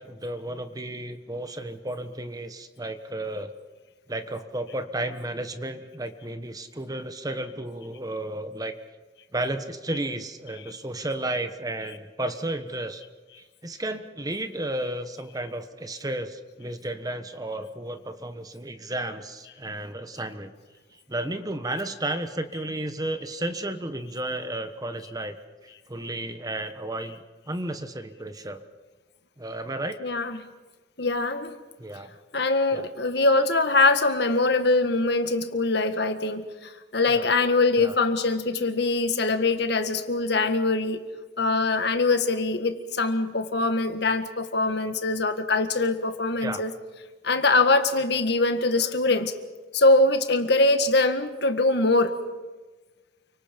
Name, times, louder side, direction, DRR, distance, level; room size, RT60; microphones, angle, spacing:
voice 1, 0.0-3.5 4.1-8.7 9.3-13.0 13.4-20.5 21.1-25.4 25.9-28.6 29.4-30.0 31.8-32.1 32.7-32.8 37.1-37.3 37.8-37.9 46.4-46.6, right 1 dB, 20° right, 9 dB, 1.3 m, -33 dB
voice 2, 30.0-30.5 31.0-31.5 32.3-41.0 41.4-46.7 47.2-49.3 49.7-52.1, left 3 dB, 60° left, 8 dB, 1.8 m, -23 dB
29.5 x 25.0 x 5.3 m, 1.2 s
head